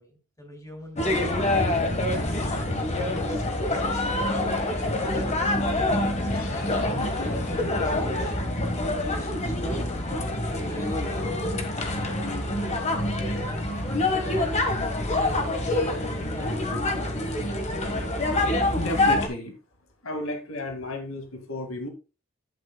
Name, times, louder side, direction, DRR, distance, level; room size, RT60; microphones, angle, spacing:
voice 1, 0.0-1.5 2.0-2.8 3.1-5.5 5.9-8.5 8.9-12.3 13.4-17.1, left 1 dB, 15° left, 2 dB, 2.8 m, -44 dB
sound 1, 1.0-19.3, left 1 dB, 30° left, 1.4 m, -26 dB
sound 2, 6.3-11.4, left 2 dB, 85° left, 1.9 m, -47 dB
voice 2, 18.7-19.5 20.0-21.9, left 1 dB, 65° left, 4 dB, 2.1 m, -32 dB
11.5 x 8.5 x 2.3 m, 0.31 s
head